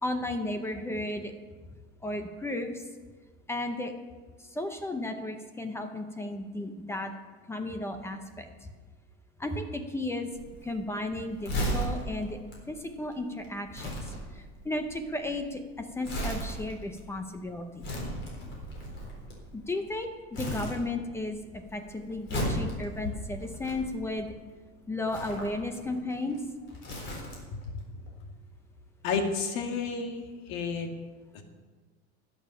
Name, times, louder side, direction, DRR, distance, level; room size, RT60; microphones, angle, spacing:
voice 1, 0.0-1.3 2.0-2.7 3.5-3.9 4.5-7.1 7.5-8.5 9.4-10.3 10.6-12.4 12.7-13.9 14.3-17.9 19.5-21.4 21.7-24.3 24.9-26.4, left 2 dB, 10° left, 6 dB, 0.6 m, -34 dB
Crumpling crinkling, 10.3-19.9 20.3-21.3 21.6-24.3 25.0-27.6 27.9-28.1, equal, 35° left, 4.1 m, -36 dB
voice 2, 29.0-30.9 31.3-31.4, left 5 dB, 70° left, 4 dB, 2.0 m, -31 dB
19.5 x 7.1 x 5.7 m, 1.4 s
cardioid pair, 170°, 31 cm